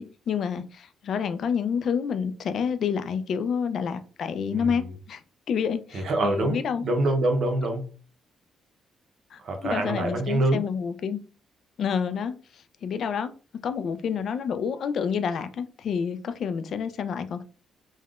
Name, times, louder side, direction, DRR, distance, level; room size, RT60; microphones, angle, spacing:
voice 1, 0.0-5.2 5.5-6.8 9.3-11.2 11.8-12.3 12.8-13.3 13.6-17.4, left 7 dB, 65° left, 0.3 m, -28 dB
voice 2, 4.5-4.9 5.9-7.9 9.4-10.6, right 2 dB, 60° right, 0.7 m, -25 dB
3.4 x 2.1 x 2.4 m
cardioid pair, 90°, 0 cm